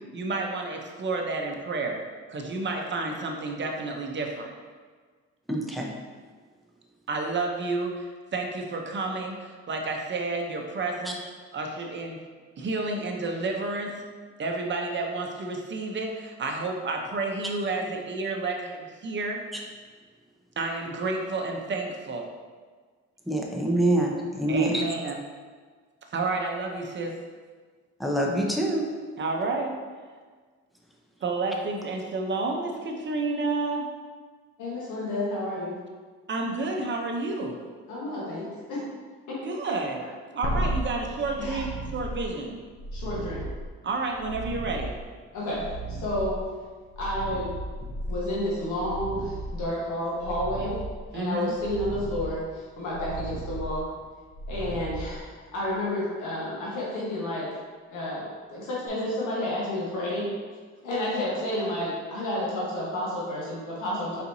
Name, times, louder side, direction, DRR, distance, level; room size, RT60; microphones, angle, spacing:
voice 1, 0.1-2.0 2.3-4.5 7.1-11.2 11.5-12.2 12.6-14.0 14.4-19.4 20.6-22.3 24.5-25.2 26.1-27.2 29.2-29.8 31.2-33.9 36.3-37.6 39.4-40.0 40.3-42.6 43.8-44.9 51.1-51.6, right 3 dB, 40° right, 2 dB, 0.7 m, -30 dB
voice 2, 5.5-5.9 23.3-24.8 28.0-28.9, right 1 dB, ahead, -1 dB, 0.7 m, -25 dB
voice 3, 34.6-35.8 37.9-38.9 39.3-39.4 41.4-41.6 42.9-43.5 45.3-46.4 47.0-47.5 48.1-50.8 51.1-53.9 54.5-57.5 57.9-60.3 60.8-64.2, left 1 dB, 80° left, -6 dB, 1.3 m, -30 dB
sound 1, 40.4-55.7 58.9-59.0, right 1 dB, 45° left, 0.8 m, -35 dB
4.3 x 4.1 x 2.7 m, 1.5 s
cardioid pair, 90°, 30 cm